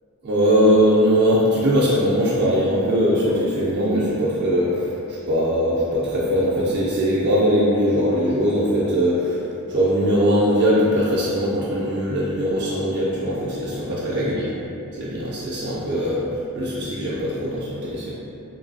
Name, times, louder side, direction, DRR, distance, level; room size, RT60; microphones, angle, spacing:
voice 1, 0.2-9.4 9.7-14.5 15.0-16.3 16.5-18.1, equal, 50° right, -7 dB, 0.4 m, -20 dB
3.0 x 2.6 x 2.6 m, 2.8 s
head